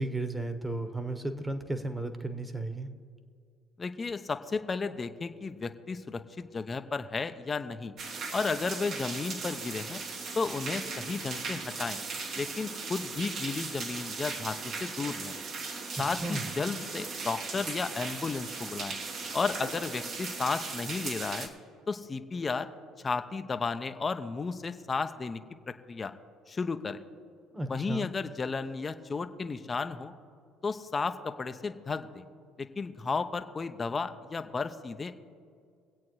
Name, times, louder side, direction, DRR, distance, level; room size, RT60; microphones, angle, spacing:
voice 1, 0.0-2.9 16.1-16.4 27.5-28.1, right 2 dB, 15° right, 8 dB, 1.2 m, -34 dB
voice 2, 3.8-7.9 8.3-10.0 10.3-12.0 12.4-15.4 16.0-19.0 19.3-21.5 21.9-22.7 23.0-25.4 25.7-26.1 26.5-27.0 27.7-30.1 30.6-32.3 32.6-35.1, left 4 dB, 30° left, 10 dB, 0.7 m, -33 dB
sound 1, 8.0-21.5, right 4 dB, 60° right, 1.5 m, -38 dB
23.0 x 8.5 x 3.2 m, 2.2 s
hypercardioid pair, 65°, 0 cm